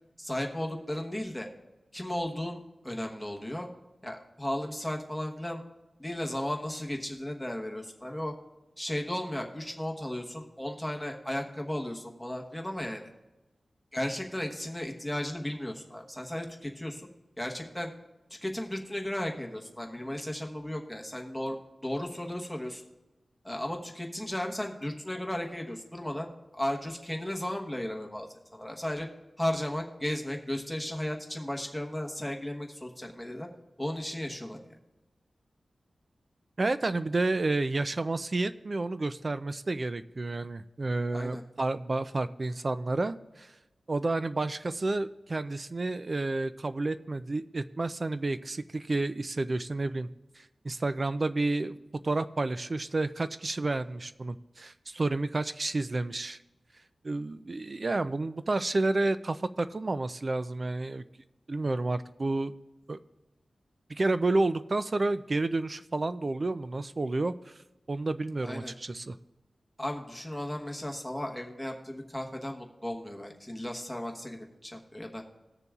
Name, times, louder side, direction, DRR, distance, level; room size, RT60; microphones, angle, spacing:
voice 1, 0.2-1.5 1.9-3.7 4.0-5.6 6.0-8.3 8.8-13.1 13.9-17.1 17.4-17.9 18.4-22.8 23.4-29.1 29.4-33.5 33.8-34.7 41.1-41.4 68.4-68.7 69.8-75.2, left 1 dB, 5° left, 1 dB, 1.1 m, -35 dB
voice 2, 36.6-43.5 43.9-50.1 50.4-51.8 52.0-56.4 57.0-61.0 61.5-62.5 62.9-63.0 63.9-67.3 67.9-69.2, right 2 dB, 40° right, 12 dB, 0.3 m, -30 dB
19.5 x 6.8 x 2.4 m, 1.0 s
wide cardioid pair, 120°, 0 cm